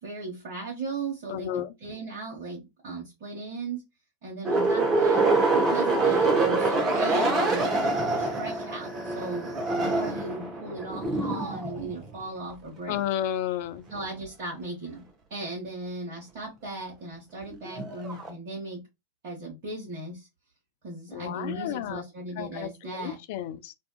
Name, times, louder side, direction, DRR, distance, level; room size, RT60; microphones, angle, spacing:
voice 1, 0.0-3.8 4.2-5.2 5.6-9.5 9.7-13.0 13.9-15.0 15.3-18.8 19.2-20.3 20.8-23.2, right 2 dB, 50° right, 1.0 m, -37 dB
voice 2, 1.3-1.7 12.9-13.8 21.1-22.0 22.4-23.7, left 11 dB, 50° left, 0.3 m, -32 dB
sound 1, 4.4-12.2 17.4-18.3, right 3 dB, 25° right, 0.7 m, -25 dB
2.6 x 2.3 x 2.3 m
figure-of-eight pair, 90°, 0 cm